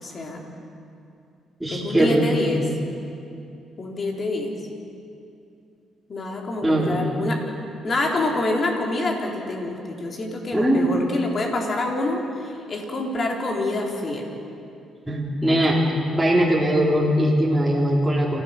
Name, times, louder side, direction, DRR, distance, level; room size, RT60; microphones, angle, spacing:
voice 1, 0.0-0.4 1.7-2.6 3.8-4.5 6.1-7.4 7.8-14.3, left 2 dB, 45° left, 1 dB, 3.8 m, -26 dB
voice 2, 1.6-2.6 6.6-7.1 10.5-11.0 15.1-15.8 16.1-18.4, right 1 dB, 5° right, -5 dB, 3.6 m, -20 dB
28.0 x 16.0 x 6.7 m, 2.6 s
cardioid pair, 90°, 0 cm